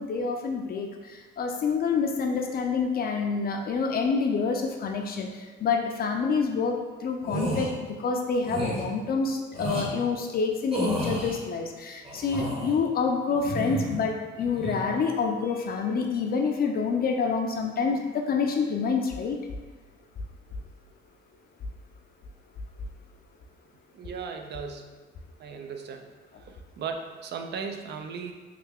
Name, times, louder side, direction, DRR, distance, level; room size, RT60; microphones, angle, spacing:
voice 1, 0.0-19.4, left 5 dB, 50° left, 2 dB, 0.4 m, -27 dB
sound 1, 7.2-7.7 8.4-8.8 9.5-9.9 10.7-11.3 12.0-12.8 13.3-14.0 14.4-14.8, right 1 dB, 30° right, 1.1 m, -31 dB
voice 2, 23.9-24.9 25.4-26.1 26.4-28.3, right 6 dB, 60° right, 5 dB, 0.4 m, -37 dB
3.2 x 2.2 x 3.4 m, 1.3 s
cardioid pair, 90°, 20 cm